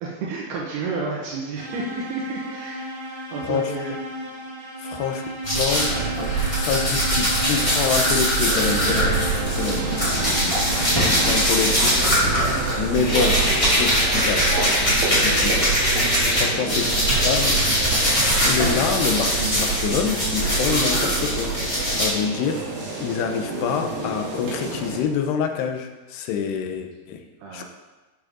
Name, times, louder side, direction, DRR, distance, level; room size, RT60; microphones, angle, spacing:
voice 1, 0.0-2.9 3.3-4.0 9.6-9.9 15.0-15.6 16.4-16.8 27.4-27.7, right 4 dB, 75° right, -4 dB, 3.4 m, -32 dB
sound 1, 1.6-11.9, right 2 dB, 40° right, 1.9 m, -34 dB
voice 2, 3.4-3.7 4.8-5.2 5.5-5.9 6.6-9.2 9.5-9.8 10.7-12.2 12.6-13.4 13.7-14.6 15.0-15.6 16.3-16.9 17.2-17.6 18.0-21.5 21.9-22.6 23.0-27.3 27.5-27.7, left 6 dB, 90° left, 5 dB, 3.1 m, -26 dB
sound 2, 5.4-16.4 16.7-22.1, right 1 dB, 10° left, 3.7 m, -21 dB
sound 3, 8.4-25.0, right 2 dB, 60° right, 4.4 m, -30 dB
12.5 x 7.8 x 3.9 m, 1.2 s
omnidirectional pair, 4.7 m